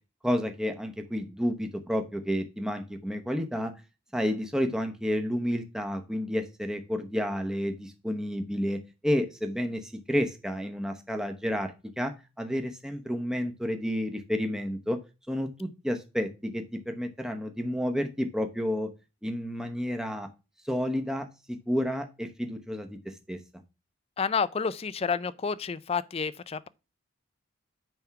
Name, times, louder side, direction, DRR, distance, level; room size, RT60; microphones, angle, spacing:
voice 1, 0.2-3.7 4.1-12.1 12.4-15.0 15.3-18.9 19.2-20.3 20.6-23.0 23.3-23.4, equal, 5° right, 0.8 m, -30 dB
voice 2, 24.2-26.7, left 5 dB, 25° left, 0.3 m, -29 dB
9.3 x 3.5 x 5.7 m
head